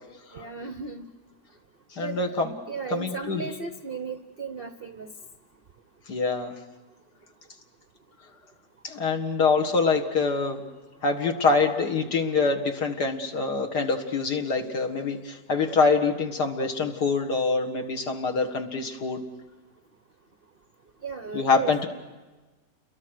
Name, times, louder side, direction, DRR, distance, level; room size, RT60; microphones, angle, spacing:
voice 1, 0.3-1.1 2.0-2.4 2.7-5.1 21.0-21.7, right 5 dB, 45° right, 9 dB, 0.7 m, -35 dB
voice 2, 1.9-2.5 2.9-3.4 6.1-6.6 8.8-10.6 11.0-19.2 21.3-21.9, left 4 dB, 60° left, 3 dB, 2.3 m, -25 dB
29.0 x 22.0 x 6.5 m, 1.2 s
omnidirectional pair, 2.0 m